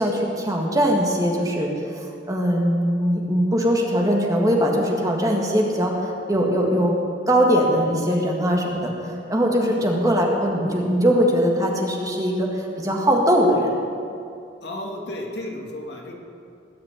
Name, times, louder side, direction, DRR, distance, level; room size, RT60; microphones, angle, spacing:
voice 1, 0.0-7.0 7.3-13.7, equal, 20° right, 0 dB, 1.8 m, -21 dB
voice 2, 14.6-16.1, left 1 dB, 60° left, 0 dB, 2.4 m, -33 dB
19.5 x 6.7 x 9.7 m, 2.5 s
head